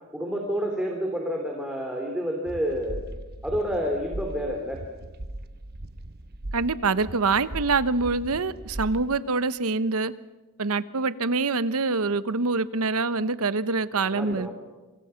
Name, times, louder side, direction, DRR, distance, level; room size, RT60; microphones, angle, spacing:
voice 1, 0.1-3.0 3.4-4.8 14.0-14.5, equal, 5° right, 0 dB, 3.1 m, -29 dB
sound 1, 2.5-9.2, right 1 dB, 45° right, 1.0 m, -39 dB
voice 2, 6.5-10.1 10.6-14.5, right 3 dB, 70° right, 15 dB, 0.9 m, -25 dB
27.5 x 24.5 x 5.8 m, 1.2 s
head